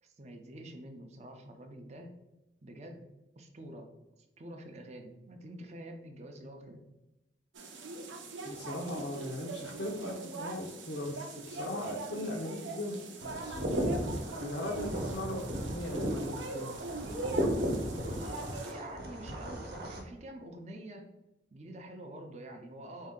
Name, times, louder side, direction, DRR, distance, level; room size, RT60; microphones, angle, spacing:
voice 1, 0.0-2.2 2.6-3.0 3.4-3.9 4.4-6.8 18.2-21.1 21.5-23.1, right 1 dB, 35° right, 4 dB, 0.5 m, -47 dB
sound 1, 7.5-18.7, right 3 dB, 85° right, 0.7 m, -42 dB
voice 2, 8.4-13.6 14.4-16.7, left 1 dB, 65° left, -2 dB, 0.6 m, -38 dB
sound 2, 13.2-20.0, equal, 55° right, 0.8 m, -35 dB
4.2 x 2.7 x 3.6 m, 0.96 s
head